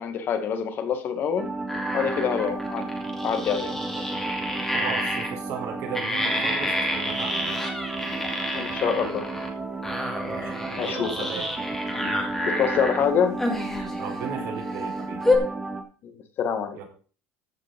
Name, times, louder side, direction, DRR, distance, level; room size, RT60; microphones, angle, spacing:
voice 1, 0.0-1.5 1.9-2.9 3.2-3.7 4.1-4.2 8.5-9.3 10.8-11.2 11.9-12.1 12.5-13.4 16.0-16.8, left 7 dB, 40° left, 8 dB, 2.0 m, -26 dB
sound 1, 1.4-15.8, right 3 dB, 10° right, 2.0 m, -33 dB
sound 2, 1.7-5.3 5.9-9.5 9.8-13.0 13.4-14.2 14.7-14.8 15.2-15.4, left 1 dB, 5° left, 2.6 m, -29 dB
voice 2, 4.7-7.6 10.2-11.5 14.0-15.2 16.7-16.8, right 7 dB, 55° right, 0 dB, 5.1 m, -36 dB
14.5 x 5.7 x 5.3 m, 0.39 s
cardioid pair, 150°, 6 cm